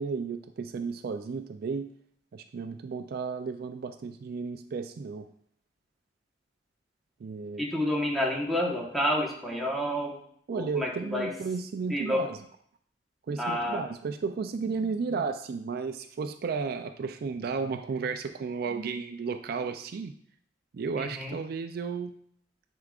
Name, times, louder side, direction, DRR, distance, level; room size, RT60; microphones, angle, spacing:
voice 1, 0.0-1.9 2.3-5.3 7.2-7.7 10.5-12.4 13.3-20.1 20.7-22.1, right 5 dB, 55° right, 8 dB, 0.3 m, -33 dB
voice 2, 7.6-10.2 10.5-11.3 11.9-12.3 13.4-13.8 21.0-21.4, left 1 dB, ahead, -3 dB, 1.2 m, -29 dB
9.9 x 4.8 x 2.4 m, 0.64 s
head